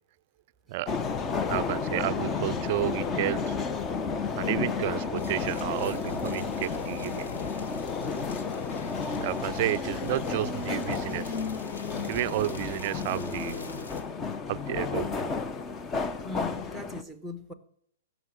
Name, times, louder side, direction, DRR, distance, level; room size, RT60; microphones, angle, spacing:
sound 1, 0.9-17.0, left 5 dB, 20° left, 0.7 m, -32 dB
voice 1, 1.5-3.6 4.4-7.3 9.2-11.4 12.0-13.7 14.5-15.3, right 16 dB, 45° right, 0.4 m, -31 dB
sound 2, 5.2-14.0, left 2 dB, 85° left, 2.3 m, -43 dB
voice 2, 16.2-17.5, left 3 dB, 5° left, 1.1 m, -40 dB
15.5 x 6.2 x 6.6 m
hypercardioid pair, 145°, 0 cm